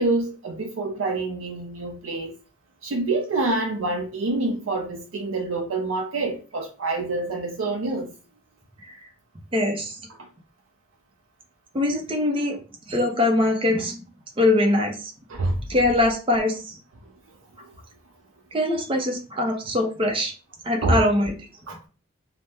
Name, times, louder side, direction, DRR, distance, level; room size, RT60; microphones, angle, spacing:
voice 1, 0.0-2.4 2.8-8.1 15.3-15.6 17.6-17.7 20.8-21.0 21.7-21.8, right 2 dB, 90° right, 0.5 m, -26 dB
voice 2, 9.5-10.0 11.7-12.6 12.9-14.0 14.4-15.1 15.7-16.8 18.5-20.3 20.6-21.3, left 1 dB, 25° right, 0.6 m, -22 dB
2.7 x 2.1 x 3.3 m
head